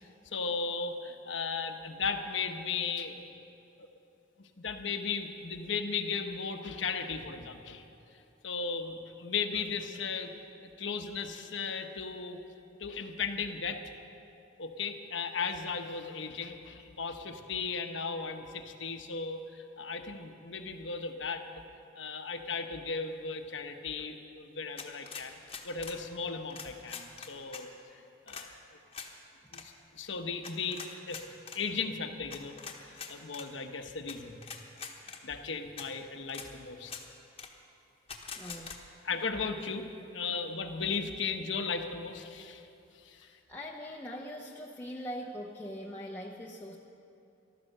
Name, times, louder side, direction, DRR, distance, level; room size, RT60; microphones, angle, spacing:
voice 1, 0.2-3.2 4.4-7.8 8.4-10.3 10.6-12.4 12.8-13.8 14.6-21.4 22.0-25.3 25.6-27.7 27.9-28.5 29.5-31.3 31.5-32.6 32.8-34.4 35.0-36.9 39.0-39.9 40.1-42.7 43.0-43.3, left 5 dB, 80° left, 6 dB, 1.1 m, -36 dB
sound 1, 24.8-26.0 26.5-27.6 28.3-28.5 28.9-29.1 29.5-29.6 30.4-31.6 32.3-33.5 34.1-34.2 34.4-35.2 35.8-35.9 36.3-36.5 36.8-37.0 37.4-37.5 38.1-38.8, left 6 dB, 30° left, 1.1 m, -43 dB
voice 2, 38.4-38.8 43.1-46.8, equal, 10° left, -3 dB, 0.8 m, -42 dB
14.5 x 12.0 x 6.6 m, 2.7 s
head